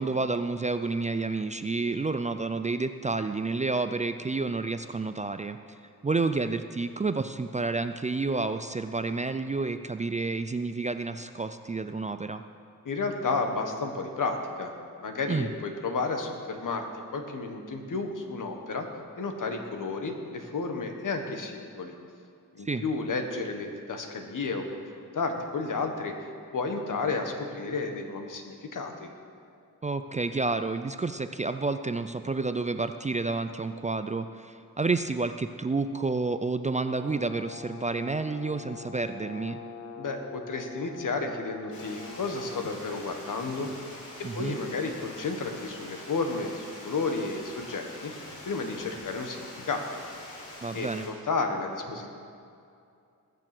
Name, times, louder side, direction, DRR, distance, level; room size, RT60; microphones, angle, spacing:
voice 1, 0.0-5.6 6.0-12.4 15.3-15.5 22.6-22.8 29.8-39.6 44.2-44.6 50.6-51.1, right 3 dB, 20° right, 9 dB, 0.4 m, -30 dB
voice 2, 12.8-14.7 15.0-16.8 17.1-18.9 19.2-21.9 22.5-26.1 26.5-29.1 40.0-43.7 44.3-48.1 48.4-49.9 50.7-52.1, left 3 dB, 65° left, 4 dB, 1.6 m, -32 dB
Brass instrument, 36.9-42.7, left 4 dB, 45° left, 1.5 m, -44 dB
Water, 41.7-51.1, left 1 dB, 85° left, 4.0 m, -45 dB
20.0 x 6.9 x 6.1 m, 2.4 s
wide cardioid pair, 100°, 34 cm